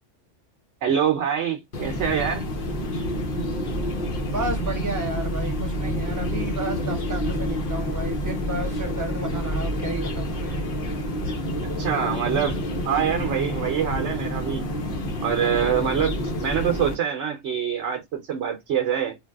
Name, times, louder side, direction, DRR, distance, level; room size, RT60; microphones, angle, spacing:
voice 1, 0.8-2.5 11.8-12.6 12.9-14.6 15.2-19.2, right 8 dB, 70° right, 1.0 m, -25 dB
sound 1, 1.7-16.9, equal, 50° left, 0.9 m, -28 dB
voice 2, 4.2-10.6, right 1 dB, 15° right, 0.9 m, -32 dB
3.3 x 2.6 x 2.2 m
omnidirectional pair, 1.3 m